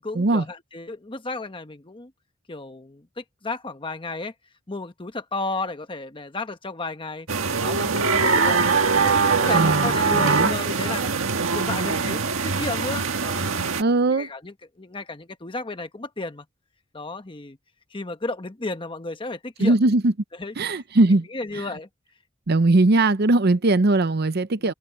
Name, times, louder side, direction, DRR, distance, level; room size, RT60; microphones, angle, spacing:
voice 1, 0.0-2.1 2.5-4.3 4.7-7.3 7.6-8.7 9.0-11.0 11.5-13.7 14.1-16.4 16.9-17.6 17.9-19.7 20.4-20.5 21.1-21.9 24.6-24.7, left 3 dB, 25° left, 1.1 m, -33 dB
sound 1, 7.3-13.8, right 4 dB, 75° right, 1.7 m, -22 dB
voice 2, 9.5-10.5 13.8-14.3 19.6-20.1 20.6-21.3 22.5-24.7, right 2 dB, 50° right, 0.7 m, -20 dB
head